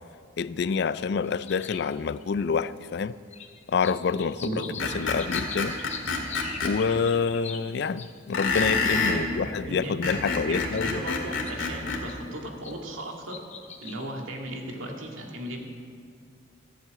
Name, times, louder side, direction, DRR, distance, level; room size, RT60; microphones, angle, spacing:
voice 1, 0.4-3.1 3.7-4.6 4.9-5.8 6.6-11.0, left 5 dB, 55° left, 0.3 m, -27 dB
sound 1, 1.2-2.5 3.0-9.1 9.5-9.9 10.1-12.7 13.1-14.1, left 6 dB, 35° left, 0.8 m, -43 dB
Screech, 4.8-6.7 8.3-9.2 9.8-12.0, left 4 dB, 90° left, 2.0 m, -27 dB
voice 2, 9.1-13.4 13.8-15.6, right 1 dB, 90° right, 2.0 m, -36 dB
14.5 x 7.6 x 8.7 m
head